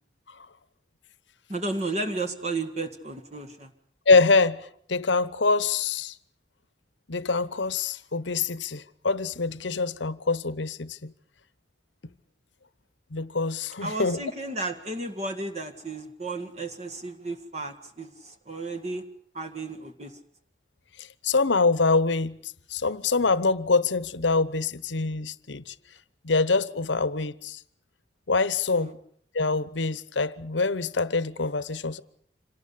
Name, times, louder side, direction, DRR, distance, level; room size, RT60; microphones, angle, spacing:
voice 1, 1.5-3.7 13.8-19.0 19.3-20.2 28.8-28.9, right 2 dB, 35° right, 1.8 m, -33 dB
voice 2, 4.1-6.1 7.1-11.1 13.1-14.2 21.0-25.7 26.2-27.6 28.3-28.9 29.3-32.0, left 4 dB, 85° left, 1.0 m, -25 dB
26.5 x 18.5 x 8.5 m
head